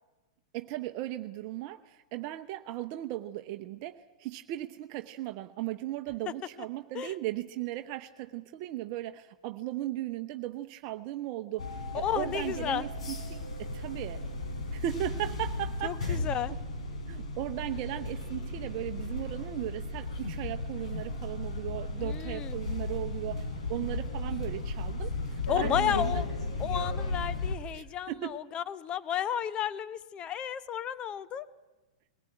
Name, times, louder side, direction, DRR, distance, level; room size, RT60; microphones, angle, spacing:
voice 1, 0.5-14.2 14.7-16.2 17.1-26.2 27.7-28.4, right 14 dB, 45° right, 7 dB, 0.8 m, -37 dB
sound 1, 11.6-27.6, left 2 dB, 70° left, 3.8 m, -35 dB
voice 2, 12.0-12.9 15.8-16.5 22.0-22.5 25.5-26.3 26.6-31.5, left 10 dB, 30° left, 14 dB, 0.9 m, -32 dB
21.0 x 18.5 x 9.0 m, 1.2 s
figure-of-eight pair, 105°, 4 cm